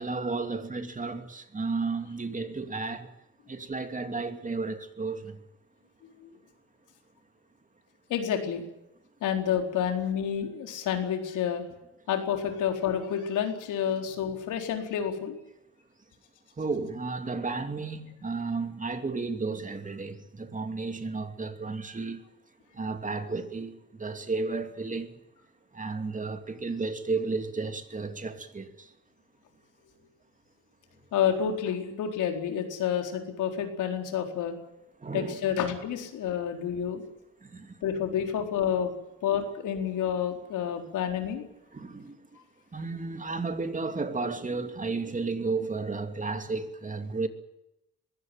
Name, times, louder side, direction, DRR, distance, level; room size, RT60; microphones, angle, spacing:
voice 1, 0.0-3.1 3.5-5.4 16.6-22.2 22.7-25.2 25.7-28.9 35.0-35.5 37.4-37.8 41.7-42.2 42.7-47.3, right 3 dB, 25° right, 2.8 m, -33 dB
voice 2, 8.1-8.6 9.2-11.6 12.1-15.4 31.1-34.6 35.1-37.0 37.8-38.9 39.2-41.4, left 8 dB, 85° left, 4.4 m, -29 dB
22.5 x 17.0 x 9.3 m
cardioid pair, 90°, 30 cm